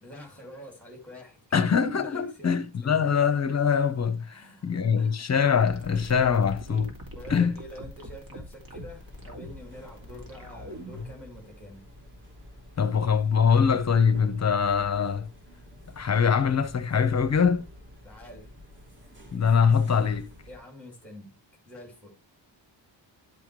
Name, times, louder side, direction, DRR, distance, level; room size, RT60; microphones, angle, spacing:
voice 1, 0.0-2.5 2.8-3.1 4.3-5.2 7.1-11.8 18.0-18.5 20.5-21.4 21.7-22.1, left 1 dB, 5° left, 2.4 m, -46 dB
voice 2, 1.5-6.9 7.3-7.5 12.8-15.3 16.0-17.7 19.3-20.3, left 6 dB, 35° left, 0.8 m, -23 dB
sound 1, 5.6-11.2, left 1 dB, 45° right, 2.5 m, -42 dB
sound 2, 8.7-20.6, left 1 dB, 25° right, 2.2 m, -49 dB
10.5 x 5.6 x 3.1 m
wide cardioid pair, 160°, 45 cm